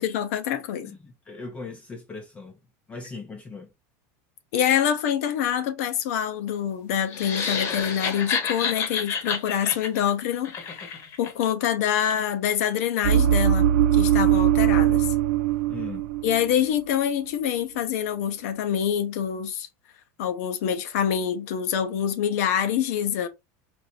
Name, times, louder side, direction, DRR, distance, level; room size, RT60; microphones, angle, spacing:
voice 1, 0.0-0.9 4.5-10.5 10.9-15.1 16.2-19.7 20.2-23.3, left 9 dB, 70° left, 0.7 m, -26 dB
voice 2, 0.8-2.6 2.9-3.7 15.7-16.1, left 4 dB, 15° left, 0.5 m, -39 dB
sound 1, 7.1-11.3, left 6 dB, 35° left, 0.9 m, -29 dB
sound 2, 13.0-16.5 16.8-17.1, right 11 dB, 75° right, 0.4 m, -21 dB
4.4 x 2.6 x 2.5 m
supercardioid pair, 170°, 8 cm